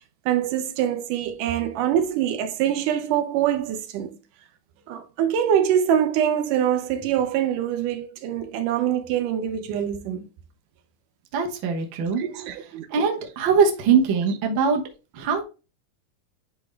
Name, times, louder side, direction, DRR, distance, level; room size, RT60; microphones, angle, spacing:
voice 1, 0.3-4.2 4.9-10.3 12.2-12.9, right 10 dB, 80° right, 2.2 m, -24 dB
voice 2, 11.3-12.2 12.9-14.8 15.1-15.4, right 6 dB, 60° right, 1.3 m, -21 dB
9.8 x 3.5 x 3.3 m
omnidirectional pair, 3.8 m